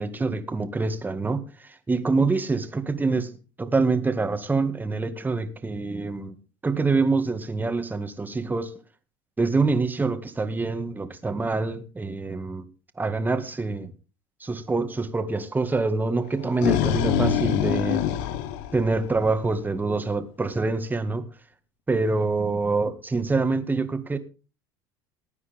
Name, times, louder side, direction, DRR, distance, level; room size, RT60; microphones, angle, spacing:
voice 1, 0.0-6.3 6.6-8.7 9.4-12.6 13.0-13.9 14.4-18.1 18.7-21.3 21.9-24.2, right 3 dB, 15° right, 2.0 m, -26 dB
sound 1, 16.3-19.5, left 10 dB, 75° left, 1.2 m, -25 dB
19.0 x 9.5 x 3.6 m
supercardioid pair, 90°, 11 cm